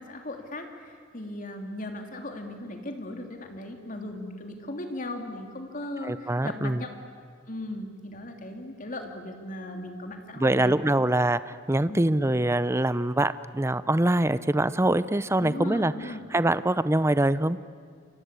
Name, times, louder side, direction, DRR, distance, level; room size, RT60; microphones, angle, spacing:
voice 1, 0.0-6.9 7.5-10.7 11.9-12.2 15.4-16.2, left 1 dB, 45° left, 4 dB, 3.1 m, -37 dB
voice 2, 6.0-6.8 10.4-15.9 16.3-17.6, right 1 dB, 15° right, 15 dB, 0.6 m, -24 dB
29.0 x 24.0 x 8.4 m, 2.1 s
head